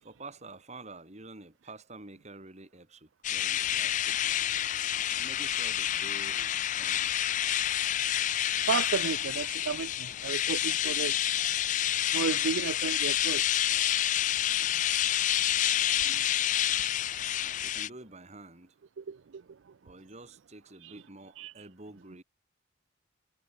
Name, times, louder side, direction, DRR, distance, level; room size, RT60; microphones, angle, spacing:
voice 1, 0.0-4.6 5.1-7.3 14.6-15.3 17.6-18.8 19.8-22.2, right 2 dB, 35° right, 3.1 m, -49 dB
sound 1, 3.2-17.9, left 11 dB, 40° left, 0.3 m, -28 dB
voice 2, 8.7-11.1 12.1-13.4 16.1-16.2 19.0-19.2 20.8-20.9 21.4-21.5, right 6 dB, 70° right, 0.5 m, -33 dB
head